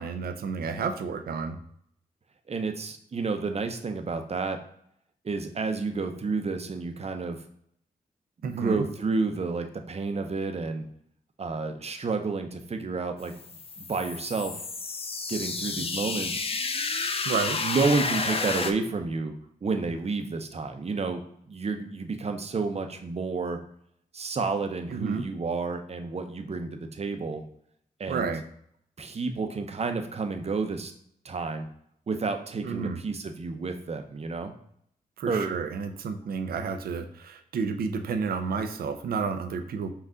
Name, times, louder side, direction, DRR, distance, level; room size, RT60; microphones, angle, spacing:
voice 1, 0.0-1.6 8.4-8.9 17.3-17.6 24.9-25.3 28.1-28.4 32.6-33.0 35.2-39.9, right 5 dB, 80° right, 8 dB, 0.5 m, -31 dB
voice 2, 2.5-4.6 5.2-7.4 8.4-10.8 11.4-13.3 13.8-14.6 15.3-16.4 17.6-19.3 19.6-23.6 24.1-27.4 28.0-28.3 29.0-30.9 31.2-31.7 32.1-34.5 35.3-35.5, right 4 dB, 45° right, 6 dB, 0.7 m, -30 dB
sound 1, 13.2-18.7, left 4 dB, 40° left, 0.5 m, -31 dB
5.5 x 2.4 x 3.7 m, 0.69 s
cardioid pair, 55°, 15 cm